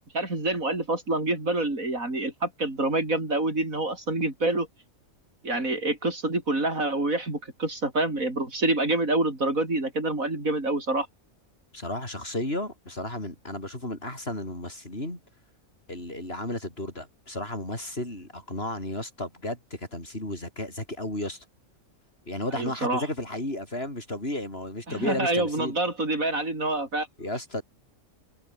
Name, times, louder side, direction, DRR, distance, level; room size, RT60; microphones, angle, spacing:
voice 1, 0.1-4.7 5.4-11.1 22.5-23.1 24.9-27.1, right 2 dB, 85° right, 6.4 m, -27 dB
voice 2, 11.7-15.2 15.9-21.4 22.3-25.7 27.2-27.6, left 1 dB, 45° left, 7.8 m, -33 dB
omnidirectional pair, 1.4 m